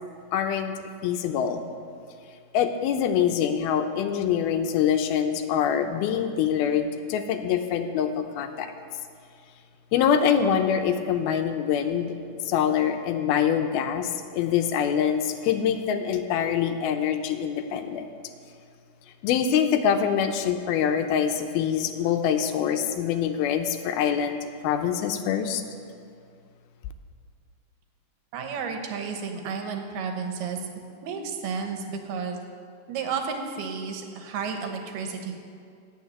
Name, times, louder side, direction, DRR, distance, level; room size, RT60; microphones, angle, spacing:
voice 1, 0.3-1.6 2.5-8.7 9.9-12.2 12.5-18.1 19.2-25.6, left 8 dB, 80° left, 7 dB, 2.6 m, -25 dB
voice 2, 28.3-30.7 31.0-32.4 32.9-35.4, right 5 dB, 85° right, 4 dB, 3.1 m, -32 dB
17.5 x 6.5 x 8.2 m, 2.3 s
omnidirectional pair, 4.5 m